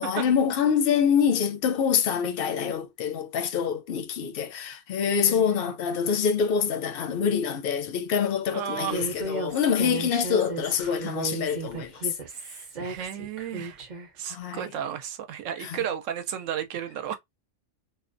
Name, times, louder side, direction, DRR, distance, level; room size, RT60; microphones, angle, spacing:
voice 1, 0.0-11.9 14.3-14.6 15.6-15.8, left 7 dB, 60° left, 0.6 m, -25 dB
voice 2, 5.2-5.7 8.5-9.2 12.2-13.8 14.1-17.1, right 9 dB, 80° right, 0.9 m, -34 dB
Human voice, 8.9-14.1, right 3 dB, 45° right, 0.7 m, -35 dB
2.7 x 2.1 x 2.5 m
omnidirectional pair, 1.3 m